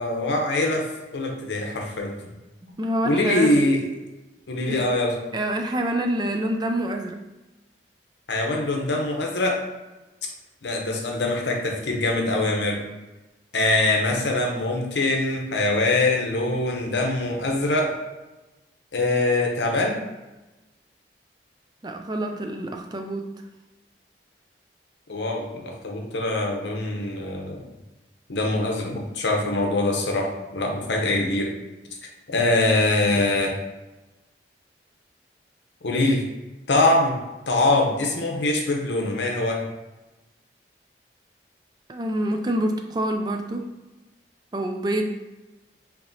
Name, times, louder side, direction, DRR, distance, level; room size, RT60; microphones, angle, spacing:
voice 1, 0.0-2.1 3.0-3.8 4.5-5.2 8.3-9.6 10.6-12.9 13.5-18.0 18.9-20.0 25.1-27.7 28.3-31.5 32.3-33.6 35.8-36.3 36.7-37.2 37.5-39.6, left 2 dB, 80° left, 1 dB, 0.8 m, -23 dB
voice 2, 2.6-3.5 4.7-4.9 5.3-7.2 21.8-23.3 41.9-43.7 44.5-45.1, right 1 dB, 25° right, 4 dB, 0.3 m, -27 dB
4.7 x 3.0 x 2.7 m, 1.1 s
head